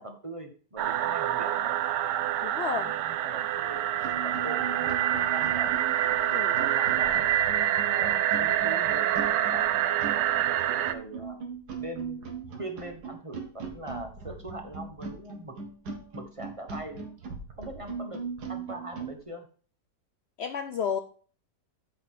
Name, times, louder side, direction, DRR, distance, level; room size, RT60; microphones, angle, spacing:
voice 1, 0.0-1.8 2.7-5.7 6.5-11.4 11.8-12.2 12.6-15.5 16.1-17.0 17.6-18.2 18.5-19.5, right 1 dB, 25° right, 4 dB, 0.9 m, -41 dB
sound 1, 0.8-10.9, right 12 dB, 90° right, 1.2 m, -26 dB
voice 2, 2.4-2.9 6.2-6.6 20.4-21.0, left 7 dB, 90° left, 8 dB, 0.5 m, -31 dB
sound 2, 3.5-3.7 4.0-19.2, right 5 dB, 70° right, 1.9 m, -39 dB
8.7 x 4.0 x 6.3 m, 0.42 s
omnidirectional pair, 1.8 m